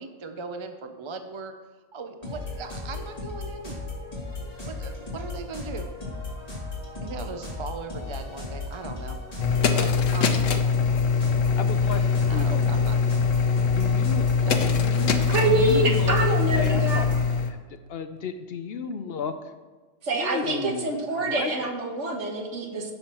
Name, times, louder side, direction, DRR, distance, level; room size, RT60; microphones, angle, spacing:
voice 1, 0.0-1.5 1.9-3.8 4.7-5.9 7.0-10.5 12.3-13.0 14.4-14.6, right 4 dB, 40° right, 7 dB, 0.4 m, -38 dB
sound 1, 2.2-17.3, left 2 dB, 30° left, 2.7 m, -36 dB
sound 2, 9.4-17.5, left 5 dB, 85° left, 1.2 m, -23 dB
voice 2, 11.6-12.7 13.7-14.3 14.6-16.1 16.5-17.1 17.4-17.6 17.9-19.5 20.1-21.7, left 6 dB, 60° left, 9 dB, 0.7 m, -33 dB
voice 3, 15.3-17.0 20.0-22.9, right 2 dB, 70° right, 2 dB, 1.6 m, -26 dB
16.0 x 6.5 x 3.0 m, 1.4 s
omnidirectional pair, 1.3 m